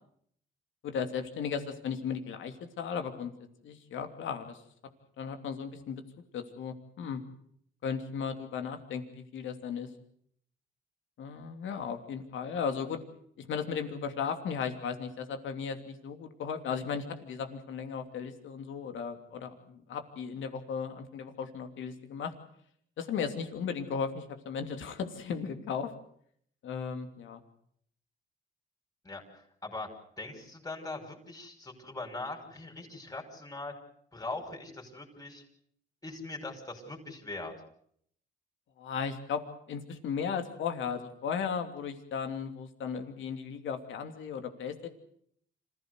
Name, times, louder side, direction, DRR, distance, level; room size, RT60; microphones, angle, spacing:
voice 1, 0.8-3.3 3.6-4.6 5.2-6.0 6.3-7.2 7.8-9.9 11.2-13.0 13.4-22.3 23.0-25.9 26.6-27.4 38.8-39.4 39.7-44.9, left 6 dB, 75° left, 6 dB, 3.0 m, -36 dB
voice 2, 29.0-29.9 30.2-33.7 34.1-35.4 36.0-37.5, left 2 dB, 15° left, 1 dB, 6.0 m, -41 dB
27.0 x 16.0 x 8.2 m, 0.67 s
cardioid pair, 90°, 20 cm